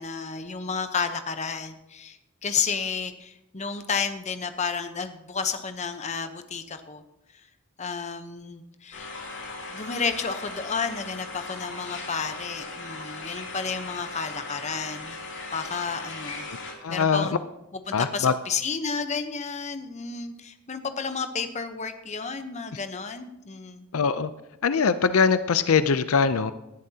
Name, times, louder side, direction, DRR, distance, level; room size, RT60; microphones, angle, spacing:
voice 1, 0.0-7.0 7.8-9.1 9.7-15.2 15.5-16.5 16.9-17.3 17.7-23.9, left 5 dB, 35° left, 9 dB, 0.8 m, -31 dB
sound 1, 8.9-16.7, left 3 dB, 55° left, 2.9 m, -38 dB
voice 2, 16.8-17.3 17.9-18.3 23.9-24.3 24.6-26.5, left 5 dB, 75° left, 13 dB, 0.5 m, -22 dB
18.5 x 11.0 x 2.8 m, 0.92 s
head